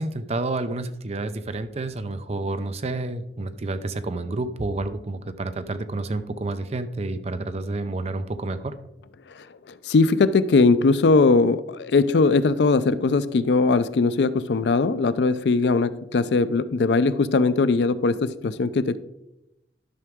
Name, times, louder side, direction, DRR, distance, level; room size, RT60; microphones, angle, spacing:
voice 1, 0.0-8.8, right 2 dB, 35° right, 11 dB, 0.5 m, -29 dB
voice 2, 9.8-19.0, left 3 dB, 70° left, 14 dB, 0.4 m, -20 dB
11.0 x 5.9 x 3.6 m, 0.87 s
head